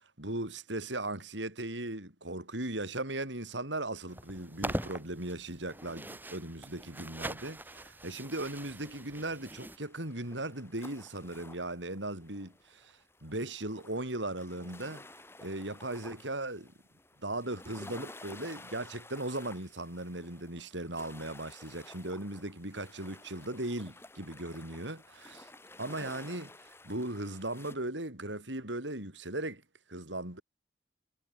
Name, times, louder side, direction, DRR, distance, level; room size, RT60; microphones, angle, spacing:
voice 1, 0.2-15.0 15.4-16.7 17.2-25.5 25.8-29.6 29.9-30.4, right 1 dB, 85° right, 6.8 m, -38 dB
sound 1, 4.1-9.8, right 1 dB, 10° right, 4.9 m, -42 dB
sound 2, 8.3-27.8, left 2 dB, 15° left, 4.9 m, -53 dB
head